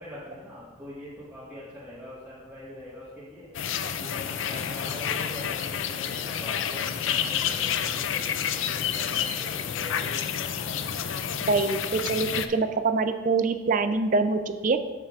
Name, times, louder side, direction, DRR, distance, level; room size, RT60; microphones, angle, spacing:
voice 1, 0.0-3.5 4.0-10.8, left 1 dB, 10° right, -11 dB, 1.4 m, -43 dB
sound 1, 3.5-12.5, left 8 dB, 75° left, 0.4 m, -29 dB
voice 2, 11.5-14.8, right 3 dB, 40° right, 9 dB, 0.4 m, -25 dB
13.0 x 5.8 x 2.5 m, 1.4 s
head